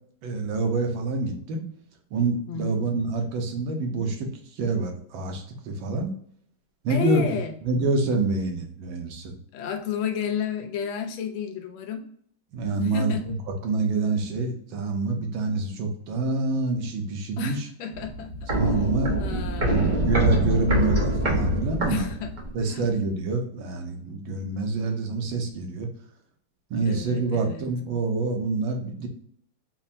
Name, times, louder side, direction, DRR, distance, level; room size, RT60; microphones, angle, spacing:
voice 1, 0.2-1.7 2.1-6.1 6.8-7.2 7.6-9.4 12.5-13.1 13.6-17.7 18.5-19.1 19.6-22.1 22.5-25.9 26.7-29.1, right 3 dB, 75° right, 3 dB, 1.6 m, -27 dB
voice 2, 2.5-2.8 6.9-7.5 9.5-12.0 12.8-13.4 17.4-18.3 19.2-20.1 21.9-22.3 22.7-22.8 26.8-27.6, left 8 dB, 80° left, 5 dB, 1.5 m, -31 dB
Walk footsteps, 17.9-22.6 22.9-23.0, equal, 55° right, 0.5 m, -25 dB
5.6 x 2.0 x 2.6 m, 0.63 s
omnidirectional pair, 2.2 m